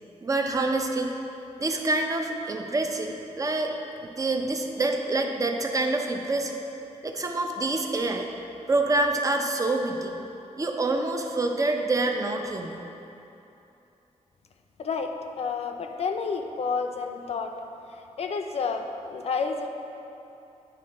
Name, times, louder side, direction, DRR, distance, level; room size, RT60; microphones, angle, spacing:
voice 1, 0.2-1.1 1.6-6.6 7.0-8.3 8.7-10.2 10.6-12.8, right 2 dB, 25° right, 3 dB, 0.6 m, -27 dB
voice 2, 14.8-17.5 17.9-18.8 19.1-19.7, left 5 dB, 55° left, 5 dB, 0.6 m, -30 dB
9.2 x 3.8 x 5.4 m, 2.9 s
wide cardioid pair, 120°, 12 cm